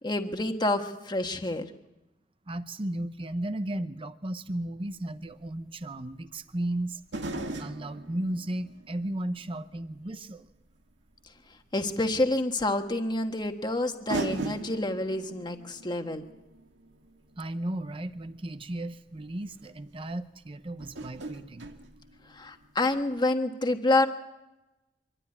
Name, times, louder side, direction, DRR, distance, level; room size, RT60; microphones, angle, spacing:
voice 1, 0.0-1.6 11.7-16.2 22.3-24.1, left 2 dB, 25° left, 5 dB, 1.5 m, -28 dB
voice 2, 2.5-7.0 7.6-10.5 17.4-21.7, right 1 dB, 30° right, 10 dB, 0.7 m, -35 dB
sound 1, 4.9-5.0 7.1-10.0 10.5-10.6 12.1-12.2 13.4-13.5 14.1-18.2 19.1-19.2 19.6-19.7 20.8-22.7 23.0-23.1, right 2 dB, 90° right, 1.9 m, -39 dB
24.5 x 13.0 x 9.7 m, 0.98 s
head